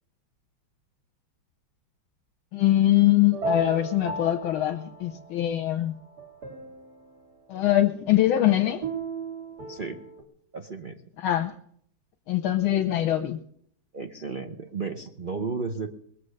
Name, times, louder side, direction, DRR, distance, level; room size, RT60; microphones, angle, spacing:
voice 1, 2.5-5.9 7.5-8.8 11.2-11.5 12.3-13.4, left 13 dB, 85° left, 5 dB, 1.7 m, -23 dB
sound 1, 3.3-5.5 6.0-7.1 8.8-10.2, right 2 dB, 50° right, 2.4 m, -34 dB
voice 2, 9.7-10.0 10.5-11.0 13.9-16.0, right 4 dB, 75° right, 4 dB, 0.4 m, -33 dB
21.0 x 7.5 x 6.5 m, 0.66 s
omnidirectional pair, 2.3 m